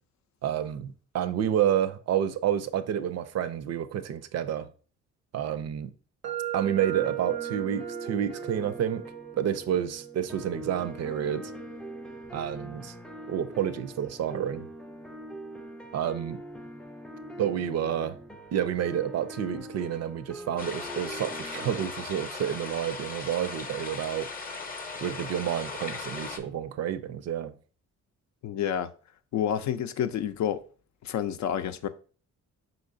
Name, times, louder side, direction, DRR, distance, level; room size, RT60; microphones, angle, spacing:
voice 1, 0.4-4.7 5.3-5.9 6.5-9.0 9.3-11.5 12.3-12.9 13.3-14.7 15.9-16.4 17.4-18.2 18.5-24.3 25.0-27.5, right 9 dB, 60° right, 0.5 m, -29 dB
sound 1, 6.2-14.1, right 13 dB, 90° right, 0.7 m, -39 dB
sound 2, 6.6-21.9, equal, 5° left, 0.3 m, -43 dB
sound 3, 20.6-26.4, left 4 dB, 30° left, 0.7 m, -38 dB
voice 2, 28.4-28.9 29.3-30.6 31.0-31.9, left 9 dB, 65° left, 0.5 m, -29 dB
4.7 x 3.8 x 2.5 m
cardioid pair, 90°, 30 cm